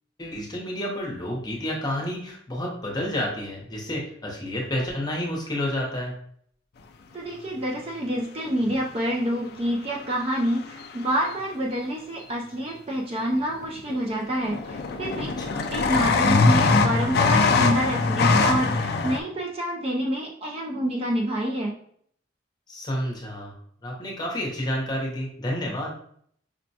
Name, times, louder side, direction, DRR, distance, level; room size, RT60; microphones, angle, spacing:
voice 1, 0.2-6.1 15.4-15.7 22.7-23.6 23.8-25.9, left 1 dB, 20° left, -2 dB, 0.8 m, -30 dB
voice 2, 7.1-15.3 15.7-21.8, equal, 30° right, -1 dB, 0.4 m, -27 dB
sound 1, 8.7-8.8 10.3-11.0 13.3-13.4 13.6-14.1 14.4-19.2, left 4 dB, 55° left, 0.3 m, -22 dB
5.2 x 2.1 x 2.7 m, 0.63 s
head